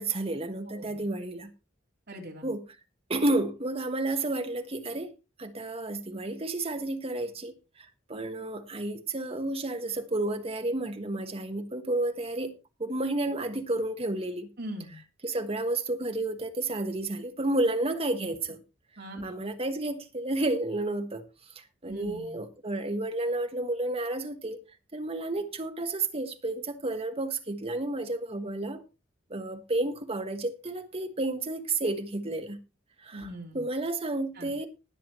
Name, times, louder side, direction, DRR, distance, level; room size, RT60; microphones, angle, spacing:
voice 1, 0.0-1.5 2.4-2.6 3.1-5.1 5.4-7.5 8.1-12.5 12.8-14.5 15.2-18.6 19.2-21.2 21.8-24.6 24.9-28.8 29.3-32.6 33.0-33.2 33.5-34.7, right 2 dB, 30° right, 1.4 m, -31 dB
voice 2, 2.1-2.5 14.6-15.0 19.0-19.4 21.9-22.4 33.1-33.6 34.4-34.5, equal, 55° right, 3.5 m, -40 dB
20.5 x 7.2 x 3.1 m
head